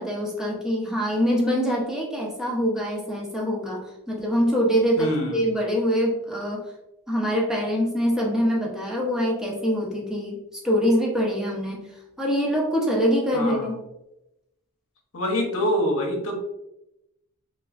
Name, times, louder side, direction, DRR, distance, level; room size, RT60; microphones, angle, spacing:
voice 1, 0.0-6.6 7.1-11.8 12.2-13.8, equal, 5° right, -3 dB, 0.7 m, -24 dB
voice 2, 5.0-5.4 13.3-13.7 15.1-16.3, equal, 65° left, 2 dB, 0.8 m, -25 dB
3.4 x 3.0 x 2.4 m, 0.89 s
head